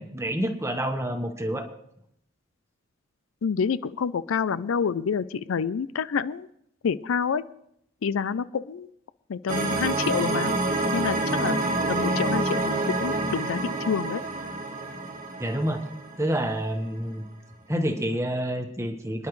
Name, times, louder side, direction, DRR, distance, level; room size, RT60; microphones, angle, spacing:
voice 1, 0.0-1.7 15.4-15.8 16.2-17.2 17.7-19.3, equal, 15° right, 5 dB, 1.3 m, -28 dB
voice 2, 3.4-6.5 6.8-7.4 8.0-8.9 9.3-10.5 10.9-11.6 11.9-14.2, left 6 dB, 75° left, 16 dB, 0.4 m, -28 dB
sound 1, 9.5-16.6, right 2 dB, 40° right, 1.4 m, -27 dB
27.5 x 10.5 x 3.2 m, 0.74 s
head